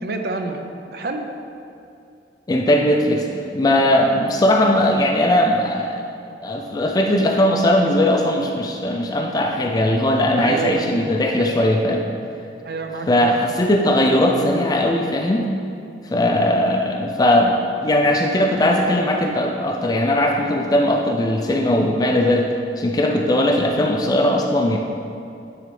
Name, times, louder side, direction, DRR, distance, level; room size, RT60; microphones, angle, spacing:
voice 1, 0.0-0.6 0.9-1.3 10.4-10.9 12.6-13.5, right 4 dB, 60° right, 5 dB, 0.5 m, -27 dB
voice 2, 2.5-3.3 3.5-6.1 6.4-12.0 13.1-15.5 16.1-17.6 17.8-22.5 22.8-24.8, left 1 dB, 20° left, 2 dB, 0.3 m, -19 dB
9.8 x 3.9 x 3.2 m, 2.6 s
head